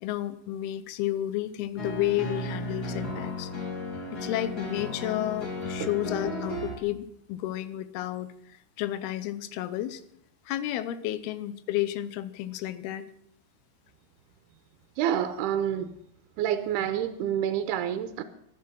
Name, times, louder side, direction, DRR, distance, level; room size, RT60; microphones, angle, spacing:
voice 1, 0.0-3.5 4.1-8.3 8.8-10.0 10.5-13.0, left 13 dB, 75° left, 14 dB, 2.7 m, -31 dB
sound 1, 1.8-6.8, left 2 dB, 30° left, 2.1 m, -34 dB
voice 2, 15.0-16.0 16.4-18.2, right 10 dB, 80° right, 9 dB, 2.7 m, -28 dB
23.5 x 8.5 x 6.1 m, 0.72 s
omnidirectional pair, 4.9 m